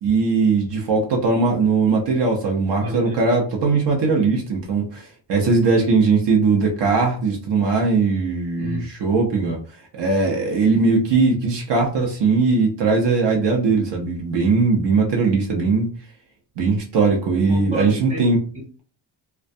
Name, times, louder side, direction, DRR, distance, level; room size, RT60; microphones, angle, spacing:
voice 1, 0.0-9.6 9.9-15.9 16.6-18.4, right 4 dB, 60° right, 0 dB, 0.7 m, -19 dB
voice 2, 2.8-3.2 8.6-8.9 17.5-18.8, right 1 dB, 15° right, -3 dB, 0.9 m, -31 dB
2.2 x 2.2 x 2.5 m, 0.39 s
wide cardioid pair, 150°, 47 cm